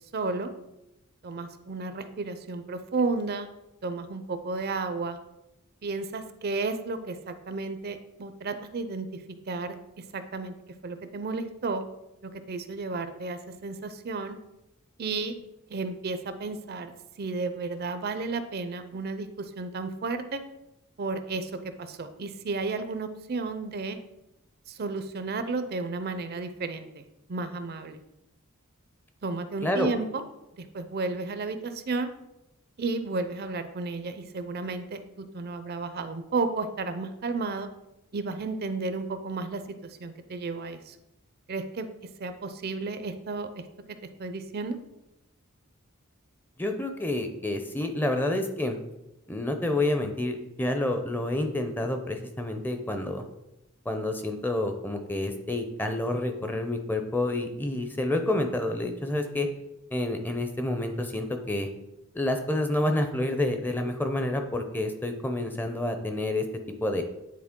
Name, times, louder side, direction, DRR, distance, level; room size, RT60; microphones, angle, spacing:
voice 1, 0.1-0.5 1.2-3.5 3.8-5.2 5.8-9.8 10.1-10.5 10.8-11.8 12.2-14.4 15.0-15.4 15.7-16.9 17.2-20.4 21.0-24.0 24.7-27.0 27.3-28.0 29.2-30.2 30.6-32.1 32.8-37.7 38.1-41.0 41.5-41.9 42.2-43.6 44.2-44.8, right 3 dB, 45° right, 10 dB, 0.5 m, -33 dB
voice 2, 46.6-48.8 49.3-53.2 53.9-59.5 59.9-61.7 62.1-66.4 66.8-67.0, left 1 dB, 10° left, 6 dB, 0.5 m, -28 dB
9.5 x 4.0 x 3.7 m, 0.90 s
head